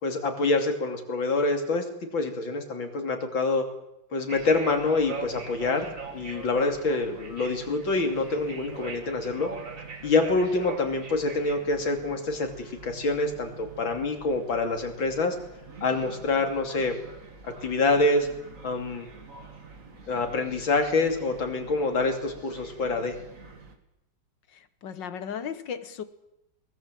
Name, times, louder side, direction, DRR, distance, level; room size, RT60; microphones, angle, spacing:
voice 1, 0.0-1.8 2.1-3.7 4.1-9.5 10.0-15.4 15.8-17.0 17.4-18.3 18.6-19.1 20.1-23.2, left 3 dB, 85° left, 5 dB, 3.6 m, -26 dB
sound 1, 4.3-23.7, right 5 dB, 45° right, 2.4 m, -43 dB
voice 2, 24.5-26.0, left 7 dB, 70° left, 12 dB, 1.9 m, -36 dB
22.5 x 19.5 x 7.7 m, 0.88 s
omnidirectional pair, 2.1 m